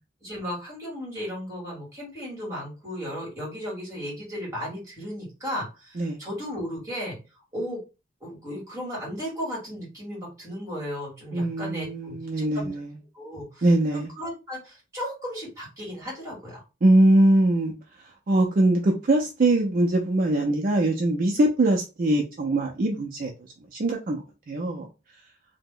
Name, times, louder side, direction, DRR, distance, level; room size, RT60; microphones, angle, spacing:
voice 1, 0.2-7.2 7.5-7.8 8.2-12.7 13.1-16.6, equal, 15° right, 1.6 m, -35 dB
voice 2, 11.3-13.0 13.6-14.1 16.8-17.7 18.0-23.3 23.7-24.9, right 1 dB, 45° right, 0.4 m, -22 dB
2.8 x 2.1 x 3.7 m
head